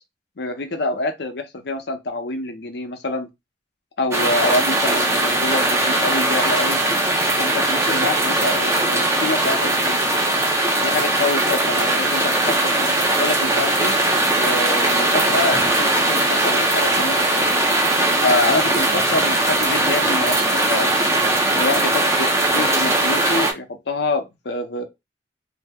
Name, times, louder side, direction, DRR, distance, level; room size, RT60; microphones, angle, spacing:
voice 1, 0.4-3.3 4.0-6.8 7.4-10.0 10.8-13.9 14.3-17.5 18.2-20.9 21.5-24.8, left 2 dB, 65° left, 0.6 m, -26 dB
sound 1, 4.1-23.5, right 2 dB, 15° right, 0.5 m, -19 dB
2.6 x 2.0 x 3.4 m
head